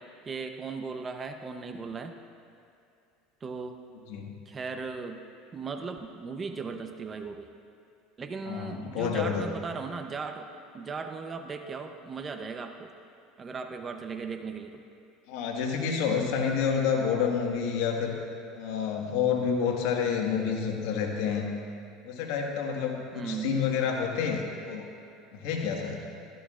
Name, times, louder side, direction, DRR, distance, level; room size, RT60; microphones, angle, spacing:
voice 1, 0.3-2.1 3.4-3.8 4.5-5.2 5.5-7.5 8.2-10.5 10.7-12.9 13.4-14.8 23.1-23.6, right 4 dB, 30° right, 6 dB, 0.8 m, -37 dB
voice 2, 4.1-4.4 8.5-9.5 15.3-18.2 18.6-21.5 22.0-24.9 25.3-26.0, left 6 dB, 75° left, 1 dB, 1.7 m, -29 dB
15.0 x 13.5 x 2.5 m, 2.6 s
supercardioid pair, 100°, 0 cm